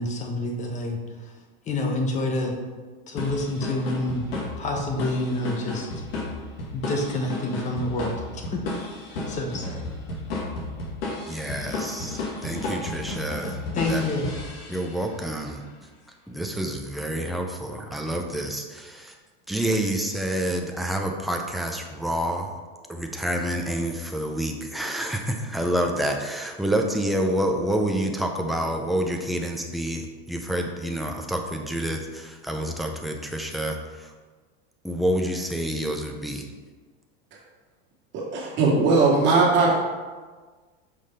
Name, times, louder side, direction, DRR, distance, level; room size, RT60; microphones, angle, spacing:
voice 1, 0.0-1.3 1.7-2.6 3.1-4.3 4.6-6.0 6.7-8.6 9.1-9.8 13.7-14.3, left 2 dB, 25° left, 2 dB, 1.1 m, -28 dB
sound 1, 3.2-15.1, left 2 dB, 75° left, 2.2 m, -33 dB
voice 2, 11.3-13.6 13.9-14.1 14.7-15.7 16.3-19.2 19.5-22.6 22.9-34.1 34.8-36.5, right 1 dB, ahead, 2 dB, 0.5 m, -28 dB
voice 3, 38.1-39.7, right 3 dB, 40° right, -4 dB, 2.2 m, -19 dB
5.9 x 5.0 x 5.4 m, 1.4 s
supercardioid pair, 145°, 30 cm